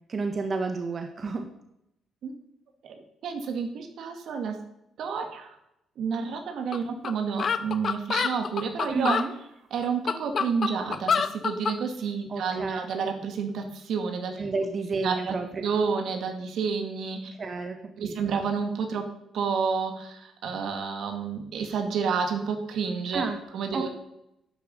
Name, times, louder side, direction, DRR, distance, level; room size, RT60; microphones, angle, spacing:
voice 1, 0.1-1.4 8.9-9.3 12.3-12.8 14.4-15.7 17.4-18.3 23.1-23.4 23.7-23.9, right 4 dB, 40° right, 6 dB, 1.3 m, -31 dB
voice 2, 3.2-4.6 5.0-5.5 6.0-9.2 9.7-14.4 15.0-15.4 15.6-17.3 18.0-19.1 19.3-23.3 23.5-23.9, right 5 dB, 70° right, 5 dB, 2.0 m, -30 dB
sound 1, 6.7-6.8 7.0-7.1 7.4-9.3 9.8-11.8, left 6 dB, 50° left, 0.8 m, -26 dB
11.0 x 7.0 x 6.7 m, 0.82 s
cardioid pair, 90°, 0 cm